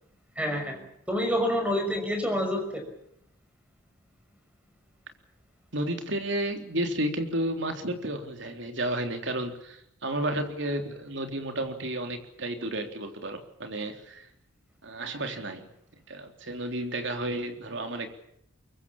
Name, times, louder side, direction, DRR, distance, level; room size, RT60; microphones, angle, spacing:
voice 1, 0.4-2.8, equal, 5° right, 5 dB, 6.1 m, -28 dB
voice 2, 5.7-14.3 14.8-15.7 16.1-18.1, right 1 dB, 60° right, 5 dB, 3.7 m, -32 dB
24.0 x 23.5 x 7.3 m, 0.73 s
head